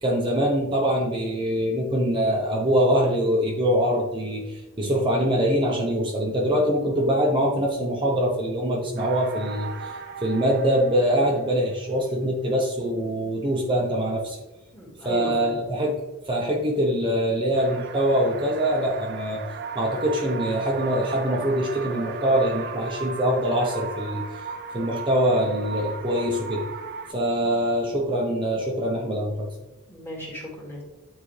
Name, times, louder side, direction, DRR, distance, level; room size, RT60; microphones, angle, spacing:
voice 1, 0.0-14.4 15.0-19.4 19.7-26.6 27.1-29.5, equal, 25° right, -2 dB, 0.8 m, -24 dB
sound 1, 9.0-12.0 17.5-27.1, right 5 dB, 50° right, 0.6 m, -36 dB
voice 2, 14.7-15.6 29.9-30.8, equal, 10° left, -2 dB, 2.0 m, -33 dB
9.9 x 4.2 x 3.2 m, 1.1 s
head